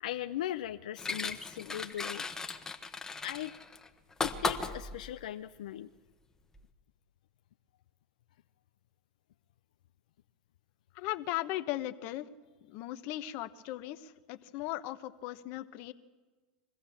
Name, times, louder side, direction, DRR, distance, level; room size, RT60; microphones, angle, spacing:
voice 1, 0.0-2.3 3.2-3.5 4.2-5.9, left 12 dB, 80° left, 8 dB, 0.6 m, -39 dB
sound 1, 1.0-5.2 6.5-6.6, left 4 dB, 10° left, 1.3 m, -37 dB
voice 2, 10.9-12.3 12.6-15.9, left 15 dB, 55° left, 11 dB, 1.1 m, -37 dB
23.0 x 15.5 x 7.2 m, 1.3 s
hypercardioid pair, 115°, 4 cm